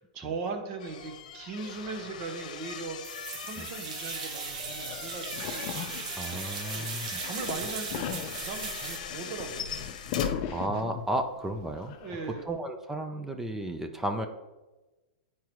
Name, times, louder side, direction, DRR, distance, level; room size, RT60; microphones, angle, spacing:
voice 1, 0.0-6.2 6.7-8.1 8.3-9.7 12.0-12.5, right 4 dB, 40° right, 5 dB, 0.9 m, -39 dB
sound 1, 0.8-11.1 11.4-11.8, left 7 dB, 70° left, 0.9 m, -40 dB
sound 2, 3.0-9.0, right 7 dB, 65° right, 0.7 m, -38 dB
sound 3, 4.5-6.8 7.1-11.2 11.6-12.6, left 8 dB, 40° left, 0.6 m, -38 dB
voice 2, 6.1-7.2 10.5-12.0 12.5-14.3, right 1 dB, 10° right, 6 dB, 0.4 m, -33 dB
9.0 x 4.7 x 3.1 m, 1.1 s
hypercardioid pair, 150°, 4 cm